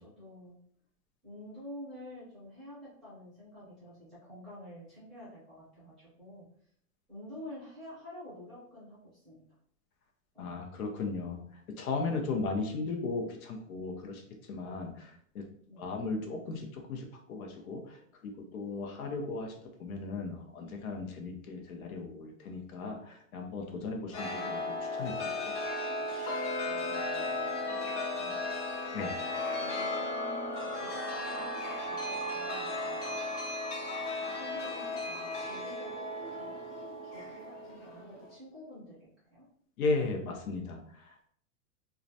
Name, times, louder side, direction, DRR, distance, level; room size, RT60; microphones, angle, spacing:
voice 1, 0.0-0.6 1.2-6.5 7.1-9.4 10.3-10.6 15.7-15.8 26.6-28.4 29.3-33.1 34.3-35.9 36.3-36.6 37.0-39.4, left 1 dB, ahead, -12 dB, 0.5 m, -49 dB
voice 2, 10.4-11.4 11.7-14.2 14.5-15.5 15.8-25.6 28.9-29.1 39.8-41.3, left 3 dB, 90° left, 2 dB, 0.7 m, -36 dB
Chime, 24.1-38.3, left 2 dB, 55° left, 0.7 m, -35 dB
2.4 x 2.0 x 2.6 m, 0.63 s
supercardioid pair, 170°, 42 cm